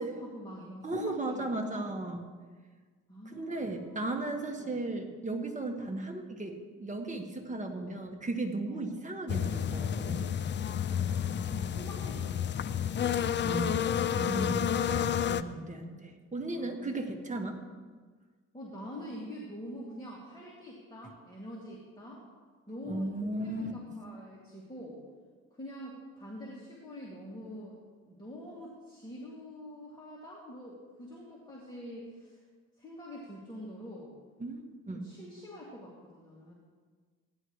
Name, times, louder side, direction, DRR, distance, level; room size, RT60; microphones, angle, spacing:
voice 1, 0.0-1.9 3.1-4.1 4.6-4.8 7.7-7.9 8.7-8.9 10.8-13.9 16.5-17.2 18.5-22.2 22.7-25.0 25.5-27.8 28.1-32.4 32.8-34.1 34.9-36.5, equal, 15° left, -5 dB, 2.5 m, -46 dB
voice 2, 0.8-2.2 3.2-10.3 13.5-13.8 14.2-17.6 22.8-23.7 34.4-35.1, right 2 dB, 25° right, 3 dB, 1.6 m, -36 dB
sound 1, 9.3-15.4, left 9 dB, 40° left, 0.4 m, -30 dB
16.5 x 11.0 x 3.2 m, 1.5 s
cardioid pair, 90°, 30 cm